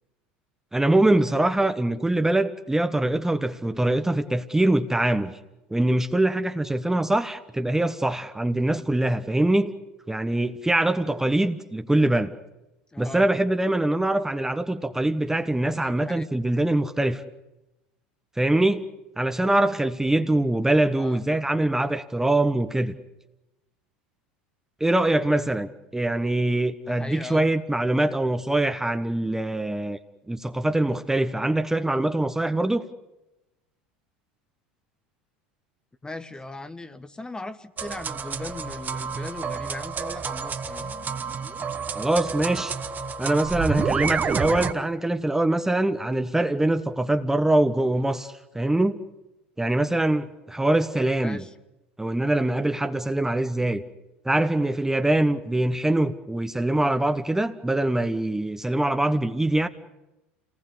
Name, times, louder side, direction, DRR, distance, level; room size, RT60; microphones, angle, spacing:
voice 1, 0.7-5.4 5.7-9.7 10.1-12.3 13.0-17.2 18.4-18.8 19.2-23.0 24.8-30.0 30.3-32.8 41.9-42.7 43.2-49.0 49.6-51.4 52.0-53.8 54.2-59.7, right 1 dB, 10° right, 1.1 m, -23 dB
voice 2, 12.9-13.3 15.8-16.3 20.9-21.2 26.8-27.5 36.0-40.9 51.2-51.5, left 2 dB, 15° left, 1.3 m, -38 dB
sound 1, 37.8-44.7, right 6 dB, 30° right, 1.2 m, -29 dB
28.5 x 19.0 x 8.3 m
hypercardioid pair, 80°, 6 cm